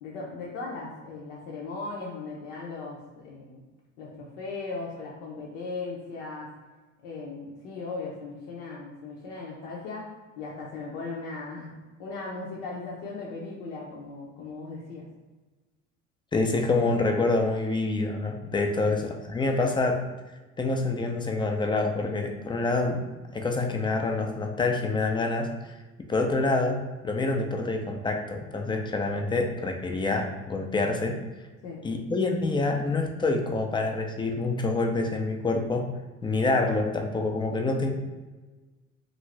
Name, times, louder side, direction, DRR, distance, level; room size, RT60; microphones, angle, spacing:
voice 1, 0.0-3.6 4.0-6.5 7.0-10.1 10.4-11.7 12.0-15.1 18.8-19.0 31.6-31.8, left 3 dB, 70° left, -3 dB, 0.7 m, -37 dB
voice 2, 16.3-20.0 20.6-31.2 31.8-35.9 36.2-37.9, left 3 dB, 15° left, 3 dB, 0.4 m, -27 dB
2.6 x 2.5 x 3.1 m, 1.2 s
hypercardioid pair, 65°, 38 cm